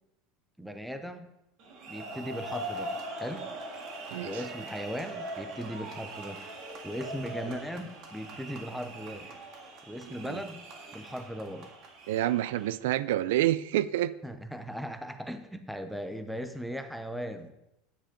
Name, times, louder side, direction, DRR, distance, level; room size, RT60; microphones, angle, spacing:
voice 1, 0.6-1.3 1.9-2.9 3.2-3.5 4.2-6.4 6.8-9.3 9.9-10.6 10.9-11.7 14.2-17.5, equal, ahead, 8 dB, 0.6 m, -38 dB
sound 1, 1.6-12.7, right 1 dB, 40° right, 1.9 m, -41 dB
voice 2, 4.1-4.4 7.5-7.6 10.3-10.4 12.1-14.1, right 14 dB, 85° right, 17 dB, 0.4 m, -28 dB
10.0 x 7.5 x 5.1 m, 0.90 s
cardioid pair, 175°, 0 cm